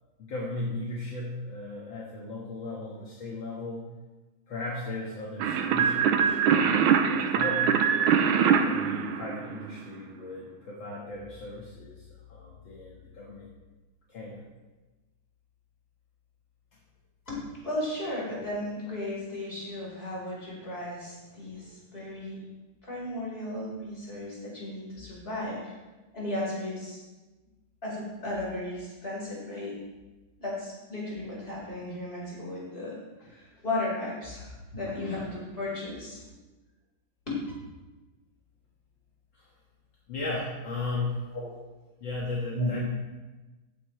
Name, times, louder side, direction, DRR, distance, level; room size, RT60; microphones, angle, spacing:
voice 1, 0.2-3.9 4.5-6.7 7.0-8.1 8.6-13.5 14.1-14.5 39.3-39.5 40.1-41.2 42.0-42.8, left 2 dB, 65° left, -5 dB, 2.3 m, -36 dB
sound 1, 5.4-9.9, right 7 dB, 75° right, 1.6 m, -23 dB
voice 2, 17.3-22.4 22.8-25.7 26.1-27.0 27.8-29.8 30.4-36.2 37.3-37.4 41.3-41.6 42.5-42.8, left 1 dB, 25° left, -6 dB, 4.7 m, -35 dB
14.5 x 9.8 x 3.3 m, 1.2 s
omnidirectional pair, 2.4 m